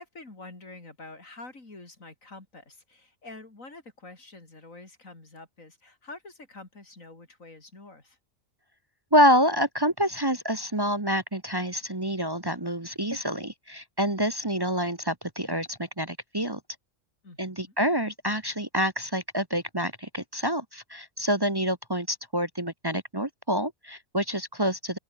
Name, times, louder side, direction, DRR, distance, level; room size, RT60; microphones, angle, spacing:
voice 1, 0.0-8.2 17.2-17.7, left 2 dB, 85° left, 4.9 m, -47 dB
voice 2, 9.1-16.6 17.4-25.0, equal, 20° right, 1.3 m, -27 dB
open air
omnidirectional pair, 1.3 m